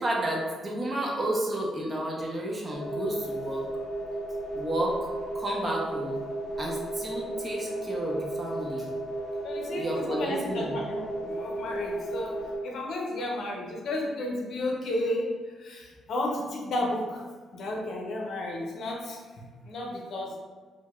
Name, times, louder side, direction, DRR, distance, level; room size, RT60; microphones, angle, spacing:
voice 1, 0.0-3.6 4.5-5.1 5.3-6.2 6.6-8.9 9.8-10.8, right 1 dB, 30° right, -2 dB, 0.7 m, -31 dB
sound 1, 2.7-12.6, right 1 dB, 10° right, 1.0 m, -34 dB
voice 2, 9.4-12.4 12.6-17.3 17.5-20.4, left 1 dB, 65° left, 0 dB, 0.6 m, -33 dB
4.6 x 2.1 x 2.3 m, 1.5 s
cardioid pair, 90°, 0 cm